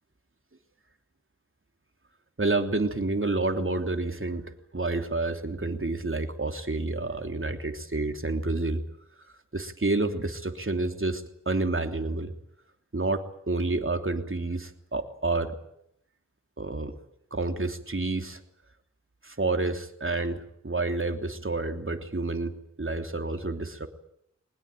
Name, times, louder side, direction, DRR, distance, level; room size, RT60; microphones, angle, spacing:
voice 1, 2.4-8.8 9.2-12.3 12.9-15.6 16.6-17.0 17.3-18.4 19.2-23.9, right 2 dB, 45° right, 6 dB, 3.1 m, -29 dB
22.5 x 20.0 x 9.0 m, 0.75 s
cardioid pair, 40°, 30 cm